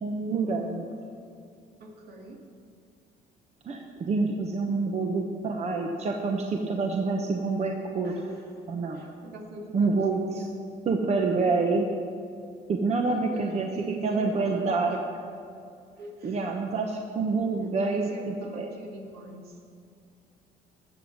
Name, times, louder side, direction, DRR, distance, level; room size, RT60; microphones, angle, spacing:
voice 1, 0.0-0.9 3.6-8.1 8.7-9.0 9.7-10.4 10.9-11.9 12.7-15.0 16.2-18.7, right 3 dB, 40° right, 2 dB, 1.0 m, -27 dB
voice 2, 1.8-2.5 8.0-8.6 8.9-10.5 13.1-14.9 16.0-16.5 17.8-19.6, right 2 dB, 65° right, 1 dB, 2.2 m, -42 dB
13.5 x 8.1 x 6.1 m, 2.4 s
cardioid pair, 110°, 17 cm